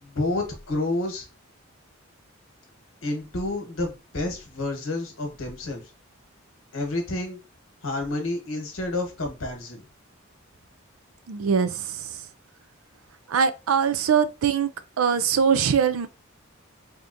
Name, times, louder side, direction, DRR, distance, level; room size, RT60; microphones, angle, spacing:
voice 1, 0.0-1.3 3.0-5.8 6.7-7.4 7.8-9.8, left 2 dB, 75° left, 1.1 m, -29 dB
voice 2, 11.3-12.1 13.3-14.7 15.0-16.1, right 7 dB, 85° right, 0.4 m, -22 dB
3.4 x 2.8 x 2.5 m
head